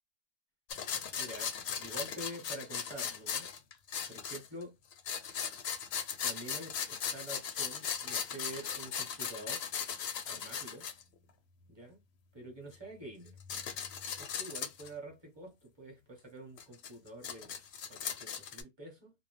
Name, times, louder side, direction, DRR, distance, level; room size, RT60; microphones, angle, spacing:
sound 1, 0.7-4.6 4.9-11.0 12.7-12.8 13.3-14.9 16.6-18.6, left 7 dB, 65° left, 0.7 m, -38 dB
voice 1, 1.1-3.5 4.1-4.7 6.2-9.6 10.2-10.9 11.7-12.0 12.3-13.4 14.2-17.5 17.9-19.1, right 1 dB, 20° right, 1.2 m, -47 dB
2.5 x 2.1 x 3.1 m
omnidirectional pair, 1.4 m